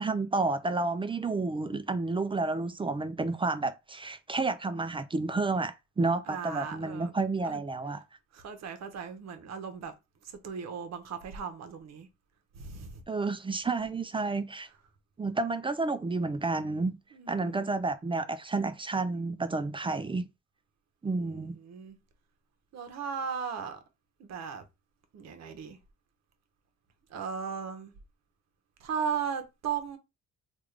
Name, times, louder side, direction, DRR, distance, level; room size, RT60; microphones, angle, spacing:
voice 1, 0.0-8.0 13.1-14.7 15.2-17.0 17.3-20.3 21.0-21.5, right 3 dB, 20° right, 0.3 m, -30 dB
voice 2, 6.3-7.1 7.4-7.6 8.3-9.9 10.2-12.1 12.5-13.0 17.1-17.6 21.1-22.0 22.7-23.8 24.2-24.6 25.1-25.8 27.1-27.9 28.8-30.0, right 7 dB, 60° right, 0.9 m, -37 dB
3.5 x 2.4 x 3.2 m
cardioid pair, 90°, 30 cm